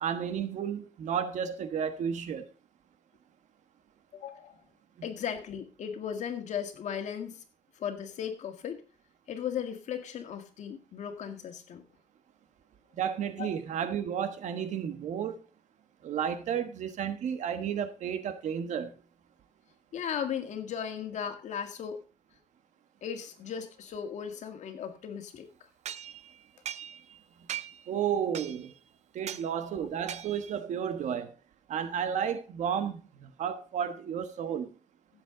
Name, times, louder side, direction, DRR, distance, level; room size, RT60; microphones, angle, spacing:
voice 1, 0.0-2.5 13.0-15.4 16.0-18.9 27.9-28.7 29.1-31.3 31.7-34.7, right 8 dB, 85° right, 1.3 m, -32 dB
voice 2, 4.1-4.5 5.0-7.4 7.8-8.8 9.3-11.8 13.4-13.5 19.9-22.0 23.0-25.5, left 8 dB, 80° left, 1.9 m, -36 dB
sound 1, 25.8-27.2 27.5-27.9 28.3-28.8 29.3-29.5 30.1-30.6, right 10 dB, 70° right, 0.7 m, -40 dB
16.0 x 7.3 x 3.9 m
cardioid pair, 110°, 12 cm